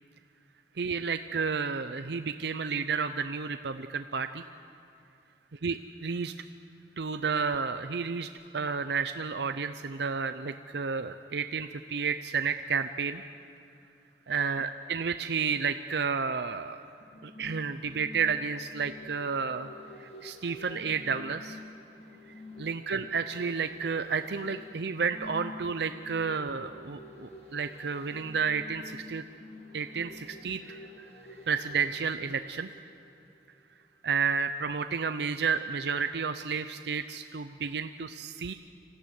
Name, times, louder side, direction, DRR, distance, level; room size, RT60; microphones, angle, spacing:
voice 1, 0.8-4.4 5.5-6.3 7.0-13.2 14.3-16.8 17.2-19.7 20.0-21.6 22.6-29.2 29.7-31.1 31.5-32.8 34.0-38.5, right 5 dB, 70° right, 9 dB, 0.6 m, -31 dB
sound 1, 17.0-33.2 33.6-33.7, left 2 dB, 35° left, 2.0 m, -48 dB
25.0 x 15.0 x 9.5 m, 2.7 s
head